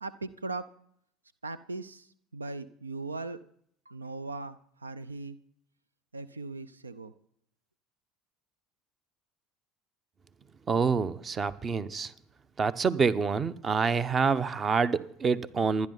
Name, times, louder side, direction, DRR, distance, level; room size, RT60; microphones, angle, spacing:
voice 1, 0.0-0.7 1.4-2.1 2.3-3.4 3.9-5.4 6.1-7.1, right 3 dB, 90° right, 0.6 m, -38 dB
voice 2, 10.7-12.1 12.6-15.9, right 5 dB, 35° right, 1.0 m, -27 dB
28.0 x 11.0 x 4.1 m
figure-of-eight pair, 65°, 0 cm